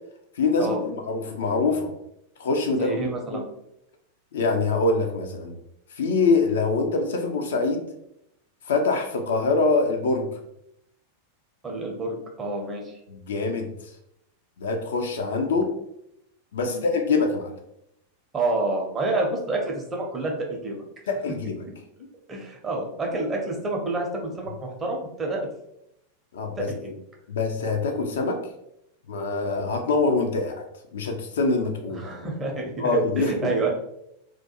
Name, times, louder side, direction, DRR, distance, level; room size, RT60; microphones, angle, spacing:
voice 1, 0.4-1.9 2.4-3.4 4.3-5.5 5.9-7.8 8.6-10.3 13.1-13.7 14.6-15.7 16.5-17.5 21.1-21.6 26.3-26.7 27.3-28.4 29.1-30.5 30.9-32.0 32.8-33.5, left 3 dB, 60° left, 4 dB, 0.4 m, -24 dB
voice 2, 2.7-3.4 11.6-13.0 16.6-16.8 18.3-20.8 22.3-25.4 26.7-26.9 31.9-33.7, right 2 dB, 20° right, 0 dB, 0.6 m, -28 dB
2.3 x 2.2 x 2.8 m, 0.79 s
figure-of-eight pair, 90°, 0 cm